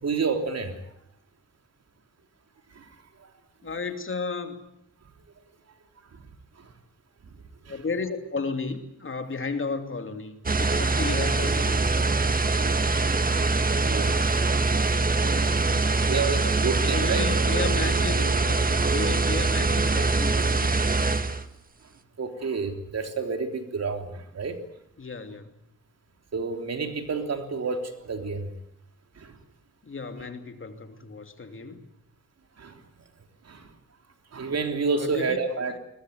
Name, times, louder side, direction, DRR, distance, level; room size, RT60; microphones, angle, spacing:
voice 1, 0.0-0.8 2.8-2.9 3.2-3.3 6.1-6.2 6.6-6.7 7.7-7.8 12.6-12.8 13.3-13.5 13.8-14.2 14.8-14.9 16.1-17.2 22.2-24.6 26.3-28.5 29.2-29.3 32.6-32.8 33.5-33.7 34.3-35.8, right 4 dB, 50° right, 6 dB, 3.5 m, -29 dB
voice 2, 3.6-4.6 7.7-11.8 15.5-15.9 16.8-20.7 25.0-25.6 29.8-31.8 35.0-35.4 35.7-35.8, left 4 dB, 40° left, 7 dB, 2.8 m, -33 dB
sound 1, 10.5-21.4, right 3 dB, 25° right, 1.7 m, -23 dB
21.5 x 21.0 x 9.4 m, 0.76 s
cardioid pair, 95°, 32 cm